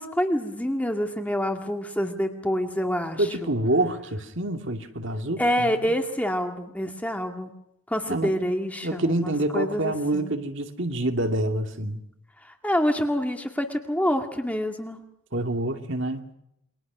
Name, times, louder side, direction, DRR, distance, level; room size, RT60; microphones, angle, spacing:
voice 1, 0.0-3.5 5.4-7.5 7.9-10.3 12.6-15.0, equal, 5° left, 4 dB, 2.1 m, -27 dB
voice 2, 3.2-5.9 8.1-8.3 8.8-12.0 15.3-16.2, right 1 dB, 55° right, 5 dB, 2.3 m, -27 dB
28.5 x 24.5 x 6.2 m, 0.78 s
head